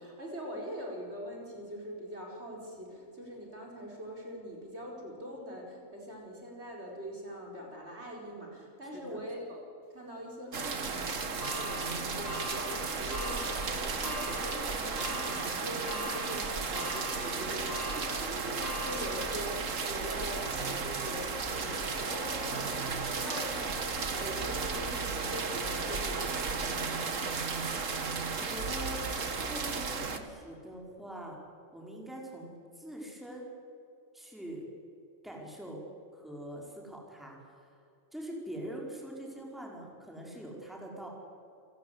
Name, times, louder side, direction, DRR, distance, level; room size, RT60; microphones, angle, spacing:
voice 1, 0.0-9.6 9.9-27.3, equal, 55° right, -1 dB, 5.1 m, -42 dB
sound 1, 10.5-30.2, right 4 dB, 75° right, 2.0 m, -34 dB
sound 2, 11.4-19.8 20.3-20.4 21.5-21.6, left 2 dB, 30° left, 2.3 m, -43 dB
voice 2, 28.4-29.0 29.3-31.4 31.7-33.4 34.1-34.6 35.2-35.8 36.1-37.7 38.1-41.1, right 1 dB, ahead, -1 dB, 4.9 m, -43 dB
29.0 x 16.5 x 8.3 m, 2.7 s
omnidirectional pair, 1.3 m